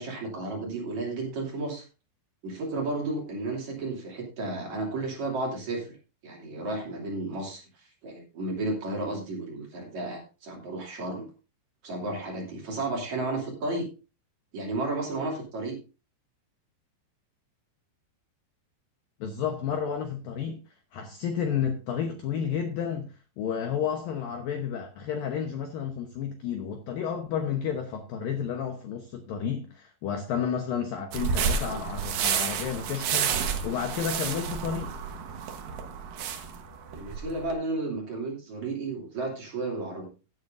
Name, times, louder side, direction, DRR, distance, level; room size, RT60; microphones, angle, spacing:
voice 1, 0.0-1.8 2.4-6.0 6.2-11.3 11.8-13.9 14.5-15.8 36.9-40.1, right 2 dB, 45° right, -1 dB, 3.7 m, -33 dB
voice 2, 19.2-20.6 20.9-35.0, left 8 dB, 70° left, 5 dB, 2.2 m, -31 dB
sound 1, 31.1-37.5, right 7 dB, 65° right, 2.4 m, -30 dB
16.0 x 9.5 x 2.6 m, 0.33 s
omnidirectional pair, 5.3 m